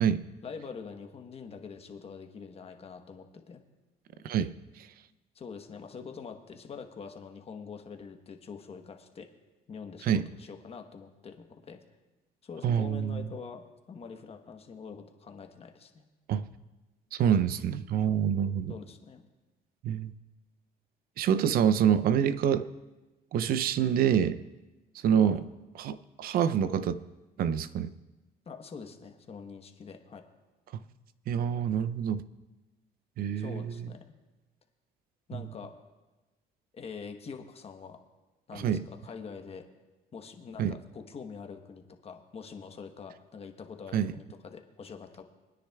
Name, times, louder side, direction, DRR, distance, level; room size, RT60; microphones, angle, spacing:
voice 1, 0.4-3.6 5.3-9.3 9.7-11.8 12.4-13.6 13.9-16.0 18.7-19.2 25.2-25.4 28.5-30.2 33.4-34.0 35.3-35.7 36.7-38.0 38.5-39.6 40.1-45.2, left 5 dB, 35° left, 5 dB, 1.1 m, -44 dB
voice 2, 12.6-13.3 16.3-16.5 17.1-18.8 19.8-20.1 21.2-22.7 23.3-24.4 25.0-25.5 25.8-27.0 27.4-27.9 31.3-32.2 33.2-33.9 35.3-35.4 38.5-38.8 40.6-40.8 43.9-44.1, right 8 dB, 60° right, 13 dB, 0.5 m, -26 dB
25.5 x 9.9 x 2.3 m, 1.1 s
cardioid pair, 110°, 17 cm